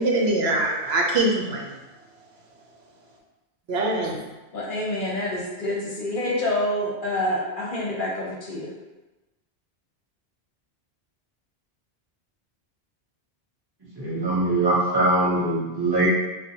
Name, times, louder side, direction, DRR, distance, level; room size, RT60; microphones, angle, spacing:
voice 1, 0.0-1.7 3.7-4.2, right 2 dB, 65° right, 0 dB, 0.9 m, -23 dB
voice 2, 4.5-8.7, left 1 dB, 55° left, -4 dB, 0.8 m, -27 dB
voice 3, 14.0-16.1, right 2 dB, 20° right, -8 dB, 1.2 m, -22 dB
4.7 x 2.2 x 2.8 m, 1.1 s
omnidirectional pair, 1.2 m